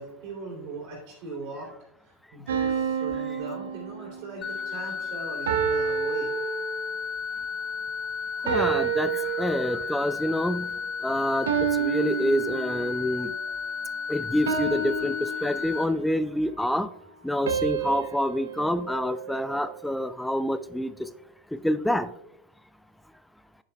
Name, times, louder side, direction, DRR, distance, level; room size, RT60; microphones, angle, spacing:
voice 1, 0.0-1.7 2.0-6.3, right 3 dB, 45° right, -3 dB, 3.0 m, -39 dB
sound 1, 2.5-4.4 5.5-7.1 8.5-10.0 11.5-13.1 14.5-16.1 17.5-19.8, right 7 dB, 60° right, 1.1 m, -30 dB
sound 2, 4.4-15.8, left 6 dB, 30° left, 1.5 m, -33 dB
voice 2, 8.4-10.7 11.0-13.3 14.1-16.9 17.2-21.1 21.6-22.1, left 1 dB, 5° left, 14 dB, 0.3 m, -27 dB
10.5 x 9.3 x 2.3 m, 0.80 s
figure-of-eight pair, 90°, 0 cm